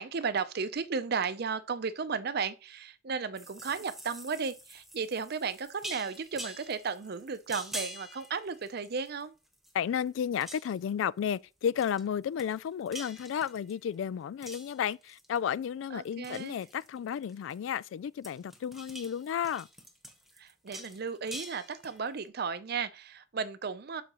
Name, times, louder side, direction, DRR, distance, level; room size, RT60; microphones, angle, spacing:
voice 1, 0.0-9.3 15.9-16.6 20.4-24.0, right 5 dB, 55° right, 0.6 m, -34 dB
sound 1, 3.4-9.2 9.5-10.1 10.3-10.9 11.8-12.1 12.4-13.9 14.4-15.5 15.8-17.8 18.2-22.2, equal, ahead, 1.2 m, -46 dB
voice 2, 9.7-19.7, left 8 dB, 90° left, 0.3 m, -32 dB
12.0 x 5.0 x 3.0 m
head